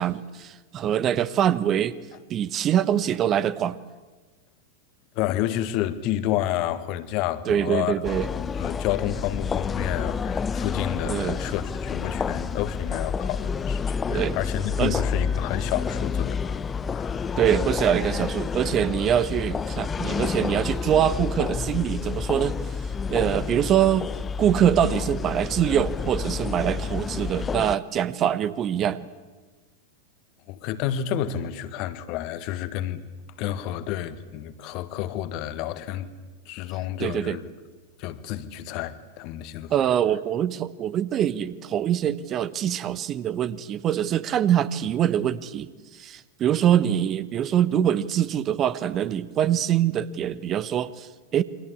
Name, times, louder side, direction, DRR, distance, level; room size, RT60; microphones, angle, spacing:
voice 1, 0.0-2.0 2.3-3.8 7.5-8.3 11.0-11.4 14.1-14.4 14.8-15.0 17.4-22.6 23.1-24.1 24.4-29.1 37.0-37.4 39.7-45.7 46.0-51.4, right 10 dB, 30° right, 16 dB, 1.0 m, -24 dB
voice 2, 5.2-7.9 8.3-16.6 16.9-17.4 30.5-33.0 33.4-36.1 36.5-37.5 38.0-39.7, left 12 dB, 40° left, 12 dB, 1.7 m, -30 dB
sound 1, 8.0-27.8, left 5 dB, 20° left, 0.8 m, -29 dB
29.0 x 24.0 x 8.6 m, 1.3 s
figure-of-eight pair, 90°, 0 cm